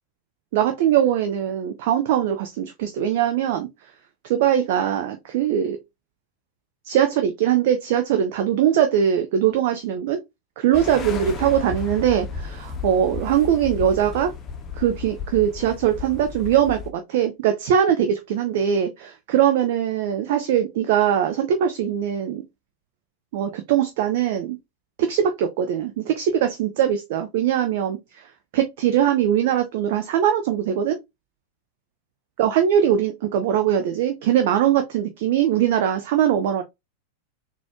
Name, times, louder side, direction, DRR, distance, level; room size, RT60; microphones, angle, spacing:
voice 1, 0.5-3.7 4.2-5.8 6.9-10.2 10.6-14.3 14.8-22.4 23.3-24.6 25.0-28.0 28.5-31.0 32.4-36.6, right 9 dB, 50° right, 0.5 m, -21 dB
sound 1, 10.7-16.9, left 6 dB, 25° left, 0.7 m, -33 dB
3.9 x 2.4 x 2.9 m
figure-of-eight pair, 90°, 0 cm